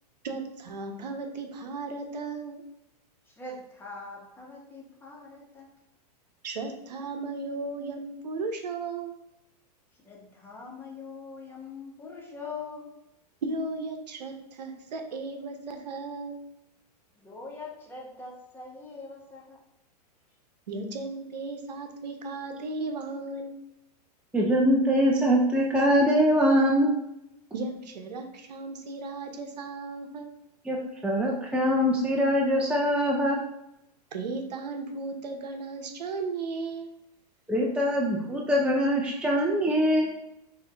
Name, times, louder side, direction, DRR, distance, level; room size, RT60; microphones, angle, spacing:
voice 1, 0.2-2.6 6.4-9.1 13.4-16.4 20.7-23.5 27.5-30.3 34.1-36.9, right 3 dB, 90° right, 5 dB, 0.8 m, -35 dB
voice 2, 3.3-5.7 10.0-12.9 17.2-19.6, left 4 dB, 10° left, -3 dB, 1.2 m, -42 dB
voice 3, 24.3-26.9 30.7-30.8 31.0-33.4 37.5-40.1, equal, 5° right, -1 dB, 0.5 m, -23 dB
5.8 x 2.7 x 3.4 m, 0.84 s
hypercardioid pair, 130°, 21 cm